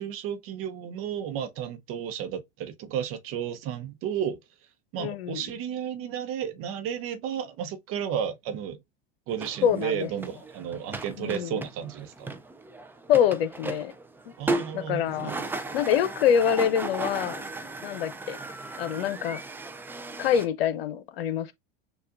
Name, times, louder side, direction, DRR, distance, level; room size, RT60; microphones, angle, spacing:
voice 1, 0.0-4.4 4.9-8.8 9.3-12.4 14.4-15.7, right 9 dB, 45° right, 0.8 m, -33 dB
voice 2, 5.0-5.4 9.6-10.1 11.2-11.6 13.1-13.9 14.3-14.4 14.7-15.3 15.7-17.4 17.8-18.4 18.8-19.4 20.2-21.5, left 9 dB, 70° left, 0.8 m, -25 dB
sound 1, 9.3-20.5, right 2 dB, 5° right, 0.4 m, -36 dB
6.5 x 2.4 x 2.5 m
hypercardioid pair, 90°, 31 cm